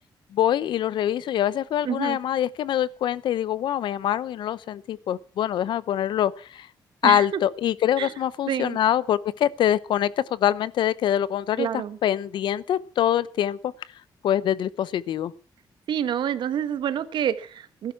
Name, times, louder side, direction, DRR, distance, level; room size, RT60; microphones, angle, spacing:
voice 1, 0.3-6.7 7.0-13.7 14.2-15.3, left 11 dB, 85° left, 19 dB, 0.8 m, -24 dB
voice 2, 1.8-2.2 7.0-7.2 8.0-8.1 8.5-8.8 11.6-12.0 15.9-17.9, right 9 dB, 80° right, 12 dB, 1.3 m, -27 dB
20.0 x 12.0 x 5.9 m, 0.41 s
cardioid pair, 100°, 8 cm